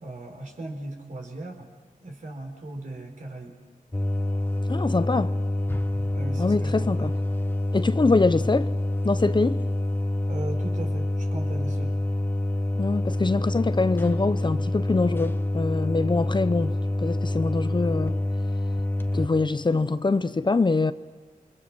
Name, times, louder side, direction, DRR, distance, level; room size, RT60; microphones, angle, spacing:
voice 1, 0.0-1.7 2.0-3.6 6.1-7.1 10.3-11.9, right 2 dB, 65° right, 4.3 m, -37 dB
sound 1, 3.9-19.3, left 1 dB, 15° left, 1.1 m, -27 dB
voice 2, 4.7-5.3 6.4-7.2 7.7-8.7 9.0-9.6 12.8-18.2 19.1-20.9, left 3 dB, 35° left, 0.7 m, -24 dB
29.0 x 23.5 x 6.1 m
wide cardioid pair, 80°, 14 cm